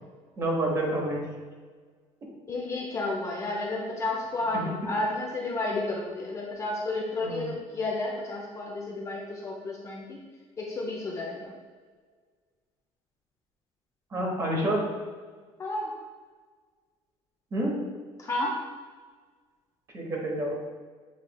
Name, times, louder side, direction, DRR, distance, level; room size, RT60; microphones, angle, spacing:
voice 1, 0.4-1.2 4.5-4.7 7.2-7.5 14.1-14.9 17.5-17.8 19.9-20.6, right 1 dB, 25° right, -1 dB, 0.9 m, -28 dB
voice 2, 2.5-10.2 10.6-11.5 15.6-15.9 18.2-18.6, left 2 dB, 25° left, -2 dB, 0.5 m, -31 dB
7.1 x 3.1 x 2.2 m, 1.5 s
cardioid pair, 160°, 11 cm